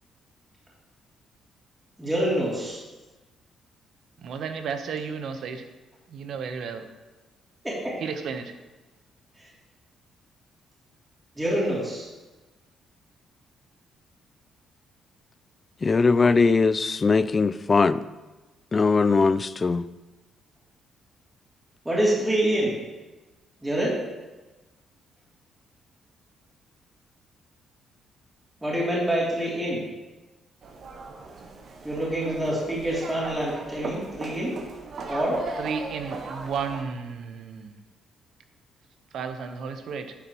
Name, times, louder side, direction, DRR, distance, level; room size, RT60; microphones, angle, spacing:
voice 1, 2.0-2.8 7.6-8.0 11.4-12.1 21.8-22.8 23.6-23.9 28.6-29.8 31.8-34.5 35.1-35.4, right 1 dB, 15° right, -6 dB, 2.8 m, -26 dB
voice 2, 4.2-5.7 6.1-6.8 8.0-8.5 35.6-37.8 39.1-40.2, right 6 dB, 70° right, 8 dB, 0.8 m, -33 dB
voice 3, 15.8-18.0 18.7-19.8, left 4 dB, 30° left, 15 dB, 0.3 m, -20 dB
sound 1, 30.6-36.8, right 3 dB, 55° right, 1.1 m, -37 dB
11.0 x 6.9 x 3.0 m, 1.1 s
cardioid pair, 90°, 0 cm